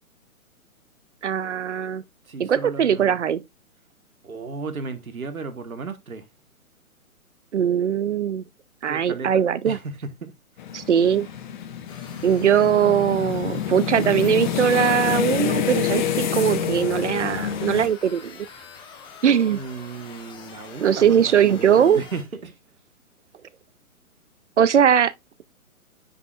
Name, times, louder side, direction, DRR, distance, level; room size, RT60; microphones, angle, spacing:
voice 1, 1.2-2.0 2.4-3.4 7.5-8.4 8.8-9.8 10.7-11.3 12.2-18.5 19.2-19.6 20.8-22.0 24.6-25.1, right 8 dB, 55° right, 0.8 m, -20 dB
voice 2, 2.2-3.2 4.2-6.3 8.9-10.3 19.5-22.6, right 4 dB, 70° right, 1.6 m, -35 dB
sound 1, 10.6-17.9, left 9 dB, 35° left, 1.2 m, -27 dB
sound 2, 11.9-22.2, left 6 dB, 10° left, 1.1 m, -45 dB
9.6 x 5.4 x 2.4 m
figure-of-eight pair, 130°, 43 cm